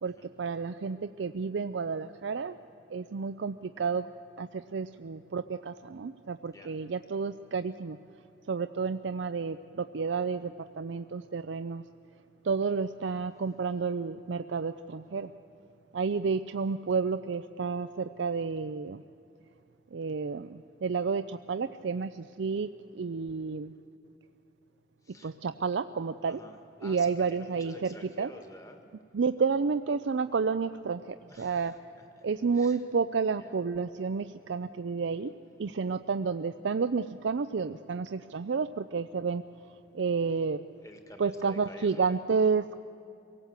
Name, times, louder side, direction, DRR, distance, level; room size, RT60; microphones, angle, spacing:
voice 1, 0.0-2.6 2.9-4.1 4.4-8.0 8.5-11.8 12.4-15.3 15.9-19.0 19.9-23.7 25.2-26.4 26.8-28.3 29.1-31.7 32.2-35.3 35.6-39.4 39.9-40.6 41.2-42.8, right 5 dB, 80° right, 10 dB, 0.5 m, -31 dB
voice 2, 26.3-28.8 31.3-31.7 32.2-32.3 32.5-32.8 33.4-33.5 40.8-42.0, left 1 dB, 20° left, 5 dB, 1.8 m, -50 dB
24.5 x 17.5 x 8.1 m, 2.6 s
head